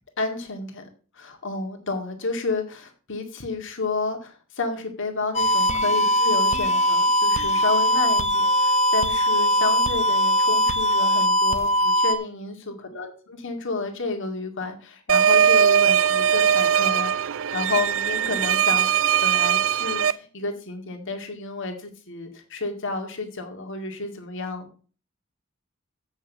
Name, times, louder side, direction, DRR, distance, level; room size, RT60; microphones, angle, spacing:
voice 1, 0.2-0.8 1.1-13.1 13.4-17.2 17.5-18.9 19.2-24.7, left 3 dB, 65° left, 4 dB, 2.1 m, -30 dB
sound 1, 5.3-12.1, equal, 35° left, 0.9 m, -21 dB
sound 2, 15.1-20.1, right 9 dB, 65° right, 0.4 m, -20 dB
8.2 x 6.4 x 7.0 m, 0.39 s
head